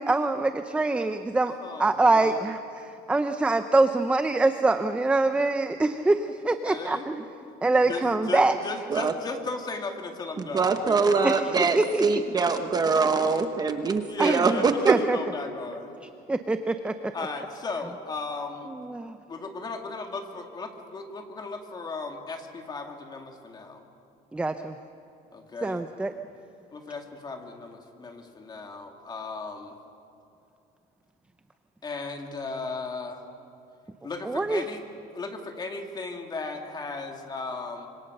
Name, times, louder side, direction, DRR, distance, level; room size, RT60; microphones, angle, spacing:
voice 1, 0.0-1.5 1.8-7.2 7.6-8.6 11.2-12.2 14.2-14.6 14.9-15.2 16.3-16.9 18.8-19.2 24.3-24.8 25.6-26.1 34.2-34.6, right 2 dB, 5° right, 8 dB, 0.6 m, -24 dB
voice 2, 1.5-2.5 6.7-7.1 7.4-7.6 7.9-11.7 14.1-16.0 17.1-18.7 19.3-23.8 25.3-25.8 26.7-29.8 31.8-33.3 34.0-34.8 35.1-37.9, left 3 dB, 25° left, 4 dB, 2.3 m, -36 dB
voice 3, 10.5-15.0, right 4 dB, 20° right, 7 dB, 1.0 m, -23 dB
26.0 x 25.5 x 6.6 m, 2.7 s
cardioid pair, 165°, 17 cm